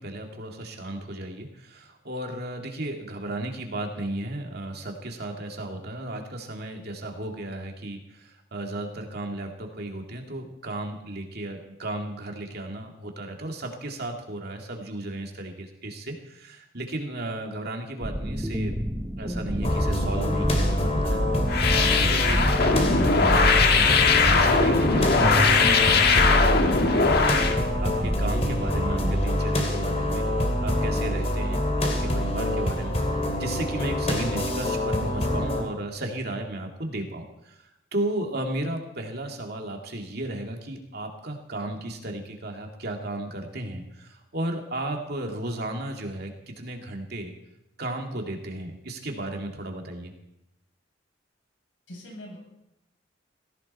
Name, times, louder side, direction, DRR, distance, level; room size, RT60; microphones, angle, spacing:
voice 1, 0.0-18.7 19.2-30.3 30.6-37.6 37.9-46.3 46.6-47.3 47.8-50.1, right 1 dB, 55° right, 2 dB, 2.5 m, -34 dB
sound 1, 18.0-29.3, equal, 10° right, 1.0 m, -28 dB
sound 2, 19.6-35.6, left 1 dB, 35° left, 2.7 m, -26 dB
sound 3, 21.5-27.6, left 4 dB, 55° left, 1.6 m, -21 dB
voice 2, 51.9-52.4, left 1 dB, 80° left, -1 dB, 7.4 m, -43 dB
18.0 x 16.5 x 4.3 m, 0.88 s
head